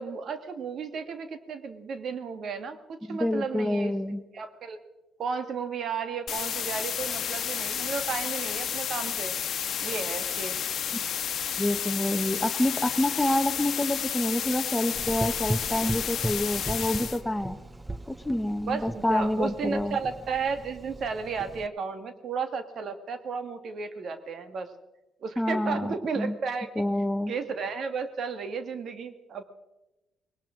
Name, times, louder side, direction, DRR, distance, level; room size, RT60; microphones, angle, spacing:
voice 1, 0.0-3.9 4.3-4.8 5.2-9.3 9.8-10.6 18.6-24.7 25.2-26.7 27.3-29.5, right 5 dB, 60° right, 9 dB, 1.5 m, -33 dB
voice 2, 3.1-4.2 11.6-17.6 18.1-20.0 25.4-26.4 26.8-27.3, left 1 dB, 10° left, 9 dB, 1.0 m, -27 dB
sound 1, 6.3-17.2, left 9 dB, 65° left, 1.1 m, -31 dB
Gurgling / Engine, 15.0-21.7, right 1 dB, 15° right, 0.6 m, -37 dB
20.0 x 18.5 x 3.8 m, 1.0 s
cardioid pair, 90°, 0 cm